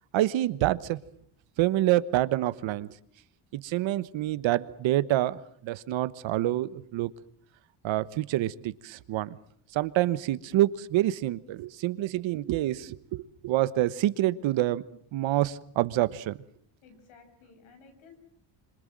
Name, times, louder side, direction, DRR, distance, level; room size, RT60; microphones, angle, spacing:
voice 1, 0.1-1.0 1.6-2.9 3.5-7.1 7.8-9.4 9.7-14.8 15.1-16.4, right 14 dB, 70° right, 16 dB, 1.3 m, -27 dB
voice 2, 16.8-18.2, left 5 dB, 80° left, 6 dB, 7.6 m, -55 dB
26.5 x 26.5 x 7.6 m, 0.64 s
cardioid pair, 140°, 47 cm